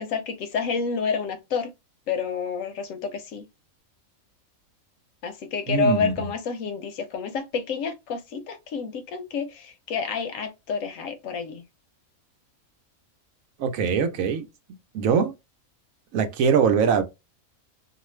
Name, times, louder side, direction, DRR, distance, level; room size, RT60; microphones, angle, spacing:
voice 1, 0.0-1.7 2.1-3.5 5.2-11.6, left 5 dB, 70° left, 0.9 m, -29 dB
voice 2, 5.7-6.3 13.6-14.5 14.9-15.3 16.1-17.0, right 6 dB, 70° right, 1.0 m, -22 dB
2.5 x 2.4 x 3.0 m
omnidirectional pair, 1.5 m